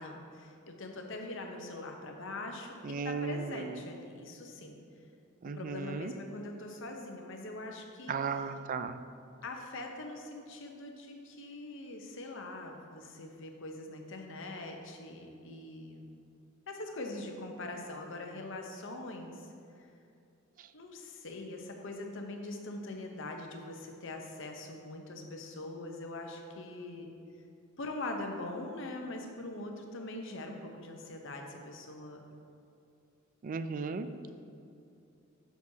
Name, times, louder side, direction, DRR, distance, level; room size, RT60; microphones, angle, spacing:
voice 1, 0.0-4.8 5.5-8.4 9.4-16.1 16.7-19.4 19.8-19.9 20.7-27.1 27.8-32.2 34.3-34.4, left 2 dB, 65° left, 3 dB, 0.9 m, -42 dB
voice 2, 2.8-3.6 5.4-6.1 8.1-9.0 33.4-34.1, right 5 dB, 40° right, 11 dB, 0.3 m, -35 dB
9.3 x 6.9 x 2.8 m, 2.6 s
head